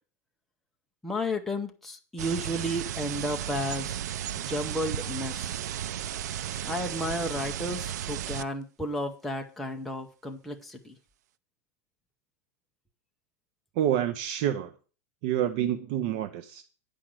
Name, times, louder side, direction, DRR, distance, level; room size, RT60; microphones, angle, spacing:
voice 1, 1.0-4.0 4.4-5.6 6.6-10.9, equal, ahead, 2 dB, 0.6 m, -33 dB
sound 1, 2.2-8.4, right 10 dB, 90° right, 0.5 m, -34 dB
voice 2, 13.8-14.7 15.2-16.6, right 11 dB, 40° right, 8 dB, 0.6 m, -28 dB
10.0 x 5.0 x 7.5 m, 0.37 s
supercardioid pair, 180°, 9 cm